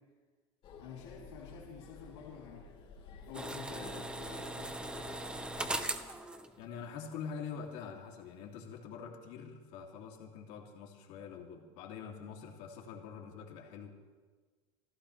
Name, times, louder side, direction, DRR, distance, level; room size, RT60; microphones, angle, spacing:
sound 1, 0.6-5.9, left 4 dB, 40° left, 3.4 m, -52 dB
voice 1, 0.8-2.7 3.3-4.8, left 6 dB, 85° left, -5 dB, 3.2 m, -49 dB
sound 2, 3.3-7.4 7.7-7.8, right 1 dB, 5° right, 1.0 m, -40 dB
voice 2, 6.6-13.9, left 6 dB, 60° left, 1 dB, 2.7 m, -45 dB
27.0 x 15.0 x 3.3 m, 1.4 s
supercardioid pair, 130°, 14 cm